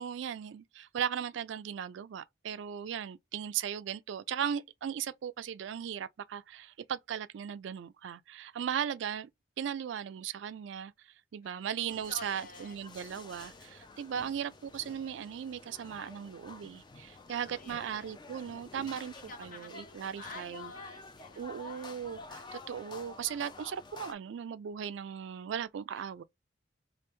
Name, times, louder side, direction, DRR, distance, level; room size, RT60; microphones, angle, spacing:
voice 1, 0.0-9.3 9.6-10.9 11.3-19.1 19.4-20.7 21.4-26.2, right 8 dB, 75° right, 0.3 m, -37 dB
voice 2, 11.4-12.8 17.3-18.1 19.1-22.2 25.9-26.1, left 3 dB, 45° left, 0.9 m, -50 dB
sound 1, 11.9-24.1, left 3 dB, 25° left, 0.4 m, -50 dB
3.2 x 2.5 x 3.0 m
head